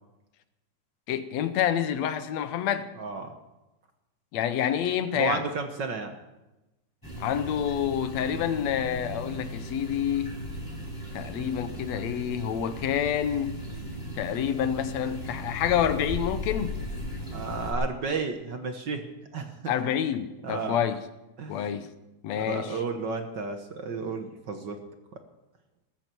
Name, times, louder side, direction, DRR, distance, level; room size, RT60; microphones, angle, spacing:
voice 1, 1.1-2.9 4.3-5.4 7.2-10.4 11.1-13.6 14.2-16.8 19.7-21.0 21.5-21.9 22.2-22.8, left 9 dB, 70° left, 2.0 m, -28 dB
voice 2, 3.0-3.3 5.1-6.2 17.3-19.0 19.3-19.7 20.4-20.8 21.4-21.6 22.4-24.8, right 4 dB, 55° right, 1.3 m, -32 dB
sound 1, 7.0-17.7, equal, 5° left, 4.6 m, -37 dB
19.5 x 15.0 x 4.6 m
omnidirectional pair, 3.5 m